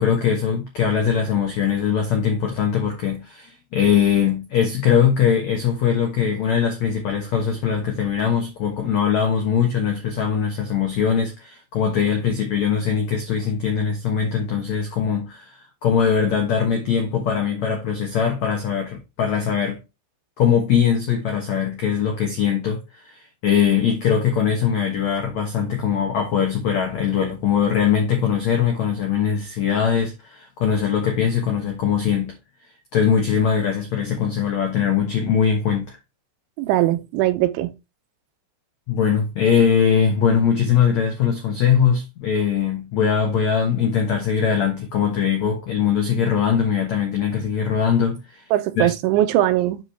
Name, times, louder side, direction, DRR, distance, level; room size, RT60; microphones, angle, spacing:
voice 1, 0.0-19.8 20.4-32.4 32.9-36.0 38.9-48.4 48.8-48.9, left 7 dB, 75° left, 1.6 m, -21 dB
voice 2, 36.6-37.7 48.5-49.8, right 14 dB, 85° right, 3.2 m, -20 dB
9.8 x 4.8 x 3.4 m
omnidirectional pair, 5.3 m